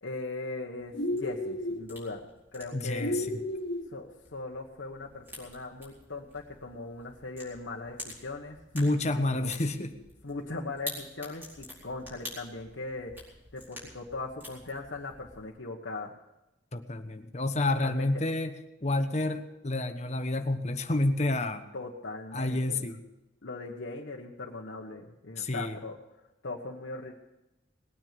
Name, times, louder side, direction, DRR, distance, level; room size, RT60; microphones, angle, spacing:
voice 1, 0.0-2.2 2.5-3.2 3.9-8.6 9.3-9.5 10.2-13.1 13.5-16.1 17.8-18.1 21.7-23.0 23.4-26.0 26.4-27.1, left 3 dB, 75° left, -1 dB, 1.3 m, -39 dB
sound 1, 0.8-15.5, left 1 dB, 10° right, 4.4 m, -48 dB
sound 2, 0.9-1.8 3.0-3.9, left 1 dB, 55° left, 1.9 m, -32 dB
voice 2, 2.7-3.4 8.7-9.9 16.7-18.5 18.8-21.6 22.3-23.0 25.4-25.8, left 2 dB, 35° left, 8 dB, 1.1 m, -29 dB
20.0 x 9.4 x 6.9 m, 0.97 s
head